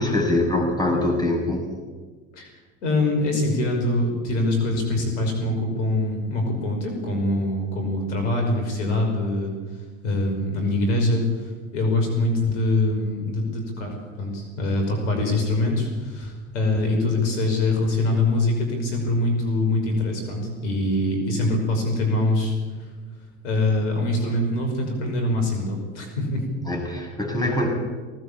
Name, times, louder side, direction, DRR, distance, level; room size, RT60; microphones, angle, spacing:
voice 1, 0.0-1.7 26.7-27.7, left 1 dB, 10° left, 1 dB, 7.7 m, -23 dB
voice 2, 2.8-9.5 10.0-22.9 23.4-26.5, left 2 dB, 75° left, 3 dB, 5.8 m, -24 dB
19.0 x 18.5 x 8.7 m, 1.4 s
hypercardioid pair, 75°, 36 cm